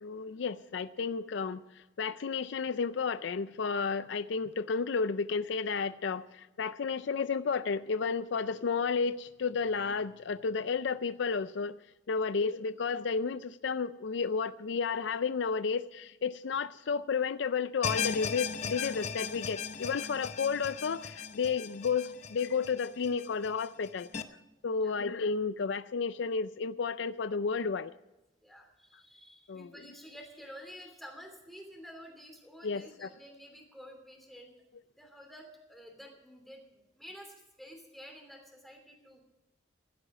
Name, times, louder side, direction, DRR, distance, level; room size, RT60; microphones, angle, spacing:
voice 1, 0.0-11.8 12.1-24.1 24.6-27.9 29.5-29.7 32.6-33.1, left 5 dB, 70° left, 14 dB, 0.4 m, -32 dB
sound 1, 17.8-24.2, left 6 dB, 35° left, 0.7 m, -37 dB
voice 2, 28.4-34.5 35.0-39.2, equal, ahead, 2 dB, 2.9 m, -50 dB
16.0 x 12.0 x 4.9 m, 1.0 s
head